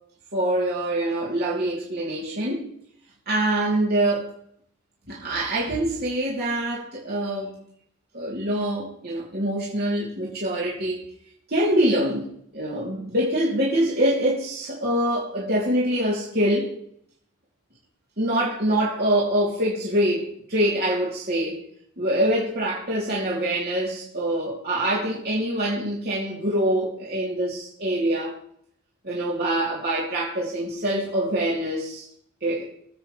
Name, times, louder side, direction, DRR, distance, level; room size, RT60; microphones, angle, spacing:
voice 1, 0.3-2.7 3.3-4.3 5.1-7.6 8.1-11.0 11.5-12.3 12.5-16.7 18.2-21.6 22.0-28.4 29.0-32.0 32.4-32.7, right 1 dB, 50° right, 3.2 m, -24 dB
23.0 x 8.2 x 3.3 m
head